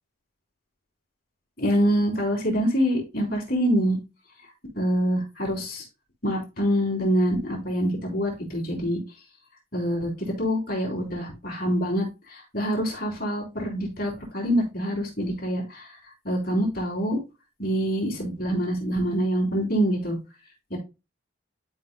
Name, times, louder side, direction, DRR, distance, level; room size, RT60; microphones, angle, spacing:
voice 1, 1.6-4.0 4.7-5.8 6.2-9.0 9.7-15.9 16.2-17.2 17.6-20.2 20.7-20.8, equal, 45° left, -2 dB, 3.3 m, -25 dB
12.0 x 5.3 x 2.2 m, 0.28 s
head